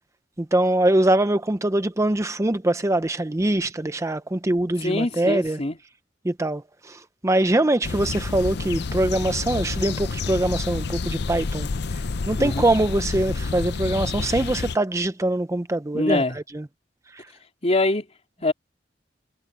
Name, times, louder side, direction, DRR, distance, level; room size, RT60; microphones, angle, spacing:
voice 1, 0.4-5.6 6.2-12.0 12.3-16.7 17.1-17.3, right 1 dB, 15° right, 0.6 m, -23 dB
voice 2, 4.8-5.8 12.4-12.6 15.9-16.4 17.6-18.0 18.4-18.5, left 2 dB, 35° left, 3.3 m, -23 dB
sound 1, 7.8-14.8, left 4 dB, 65° left, 0.6 m, -29 dB
head